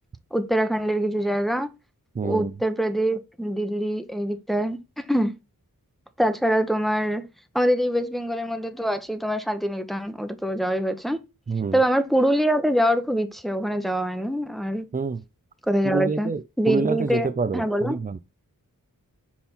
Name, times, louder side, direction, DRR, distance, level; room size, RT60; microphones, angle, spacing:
voice 1, 0.3-1.7 2.2-5.3 6.2-7.3 7.5-11.2 11.7-14.9 15.7-16.3 16.6-18.0, equal, ahead, 0.8 m, -24 dB
voice 2, 2.1-2.5 11.5-11.8 14.9-15.2 15.8-18.2, right 4 dB, 25° right, 0.4 m, -27 dB
5.7 x 4.3 x 4.1 m
wide cardioid pair, 70°, 35 cm